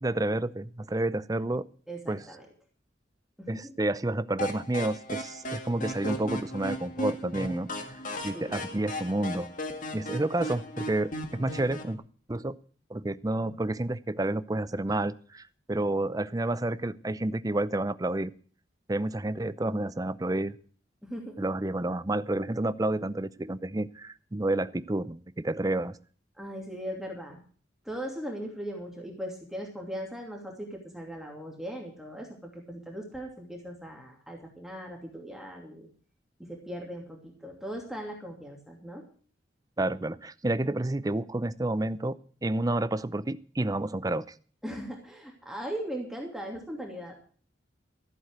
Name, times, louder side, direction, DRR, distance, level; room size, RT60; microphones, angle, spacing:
voice 1, 0.0-1.6 2.1-2.2 3.5-8.0 8.2-9.5 9.9-12.0 12.3-12.6 12.9-18.3 18.9-20.6 21.4-26.0 39.8-44.2, right 1 dB, 20° right, 15 dB, 0.6 m, -30 dB
voice 2, 1.9-2.4 3.4-3.7 8.3-8.7 21.0-21.4 26.4-27.4 27.8-35.9 36.4-39.0 44.6-47.3, equal, ahead, 0 dB, 2.7 m, -39 dB
sound 1, 4.4-11.9, equal, 45° left, 2.0 m, -37 dB
14.5 x 7.8 x 8.0 m, 0.43 s
head